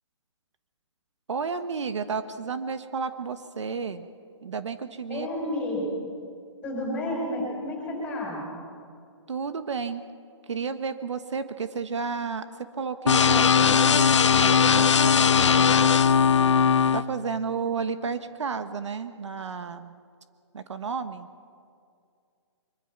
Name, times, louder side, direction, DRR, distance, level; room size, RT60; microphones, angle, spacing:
voice 1, 1.3-4.1 4.4-5.3 9.3-10.0 10.5-12.4 12.8-15.9 16.9-20.0 20.5-21.3, right 5 dB, 70° right, 10 dB, 1.2 m, -32 dB
voice 2, 5.1-5.8 6.6-8.4, left 1 dB, 10° left, -2 dB, 5.4 m, -31 dB
sound 1, 13.1-17.0, left 6 dB, 70° left, 0.9 m, -19 dB
24.0 x 23.0 x 6.0 m, 2.3 s
hypercardioid pair, 175°, 16 cm